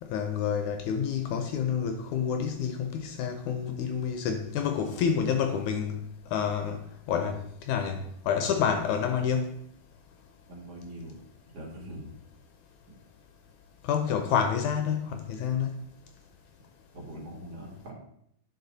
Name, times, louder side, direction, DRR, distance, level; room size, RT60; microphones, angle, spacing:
voice 1, 0.0-6.0 6.3-6.8 7.1-9.5 13.8-15.7, left 7 dB, 80° left, 1.9 m, -28 dB
voice 2, 10.5-11.1 11.5-12.1 16.9-17.9, equal, 50° right, 2.8 m, -42 dB
11.0 x 4.9 x 4.0 m
omnidirectional pair, 3.9 m